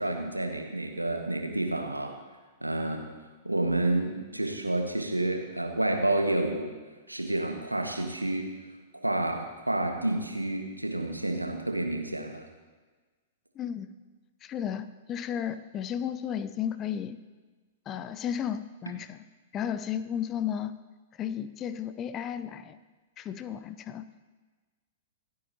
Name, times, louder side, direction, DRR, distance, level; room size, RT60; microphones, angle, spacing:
voice 1, 0.0-2.1 2.6-3.1 3.4-6.7 7.1-8.5 8.9-12.5, right 1 dB, 90° right, 3 dB, 1.6 m, -29 dB
voice 2, 13.6-13.9 14.4-17.2 17.9-19.2 19.5-20.7 21.1-22.8 23.2-24.0, left 9 dB, 25° left, 13 dB, 0.6 m, -33 dB
25.5 x 8.6 x 2.9 m, 1.3 s
figure-of-eight pair, 105°, 0 cm